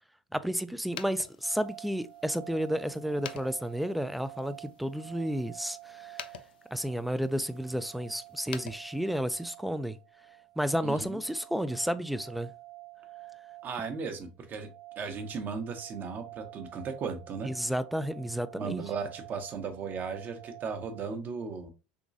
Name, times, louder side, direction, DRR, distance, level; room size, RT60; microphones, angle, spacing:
voice 1, 0.3-6.2 6.7-10.0 10.6-12.5 17.4-18.9, equal, ahead, 0.3 m, -32 dB
sound 1, 0.8-9.5, left 10 dB, 80° left, 0.4 m, -49 dB
sound 2, 1.4-21.1, right 18 dB, 75° right, 0.4 m, -50 dB
voice 2, 10.8-11.2 13.6-14.7 15.0-17.5 18.5-21.7, right 5 dB, 40° right, 0.8 m, -36 dB
3.6 x 3.0 x 2.6 m
hypercardioid pair, 85°, 5 cm